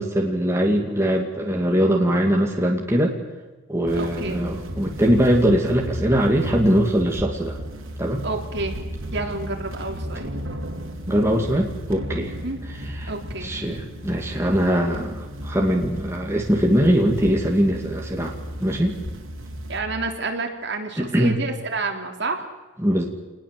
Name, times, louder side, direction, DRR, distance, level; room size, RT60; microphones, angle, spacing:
voice 1, 0.0-3.1 3.7-7.6 8.0-8.2 11.1-12.3 13.0-13.1 13.4-18.3 18.6-18.9 21.0-21.4 22.8-23.1, equal, 10° right, 0 dB, 2.4 m, -21 dB
voice 2, 3.9-4.5 8.2-8.8 9.1-10.3 12.4-12.6 13.1-13.5 19.7-22.4, right 3 dB, 55° right, 3 dB, 3.5 m, -29 dB
sound 1, 3.9-19.8, equal, 75° right, 4.0 m, -34 dB
27.0 x 20.0 x 7.8 m, 1.2 s
head